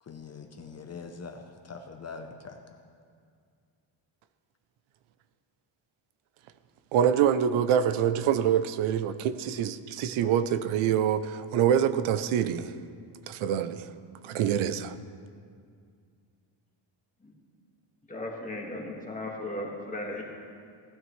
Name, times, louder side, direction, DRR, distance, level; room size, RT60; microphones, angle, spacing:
voice 1, 0.0-2.8, left 4 dB, 35° left, 4 dB, 0.7 m, -43 dB
voice 2, 6.9-12.7 13.3-13.9 14.2-14.9, right 9 dB, 90° right, 12 dB, 0.7 m, -25 dB
voice 3, 18.1-20.2, left 1 dB, 15° left, -1 dB, 1.8 m, -36 dB
17.0 x 9.1 x 3.2 m, 2.2 s
cardioid pair, 115°, 47 cm